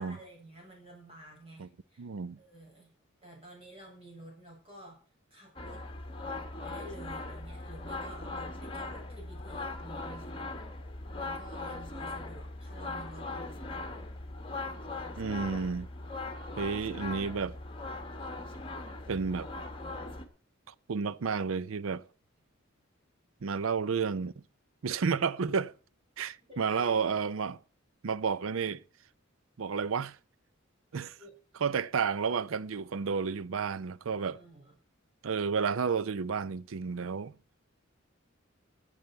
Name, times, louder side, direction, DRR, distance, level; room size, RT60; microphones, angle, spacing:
voice 1, 0.0-2.0 2.4-2.9 3.2-5.0 5.3-5.8 6.6-10.3 11.2-13.6 25.1-25.3 26.4-27.2 31.1-31.3 34.2-34.7, right 1 dB, 30° right, 7.3 m, -51 dB
voice 2, 2.0-2.4 15.2-15.9 16.6-17.6 19.1-19.5 20.9-22.0 23.4-24.3 24.8-25.7 26.2-27.6 28.0-28.8 29.6-30.2 30.9-31.2 31.6-34.4 35.2-37.4, right 5 dB, 80° right, 0.5 m, -31 dB
sound 1, 5.6-20.3, left 2 dB, 25° left, 1.6 m, -40 dB
16.5 x 9.3 x 4.6 m
head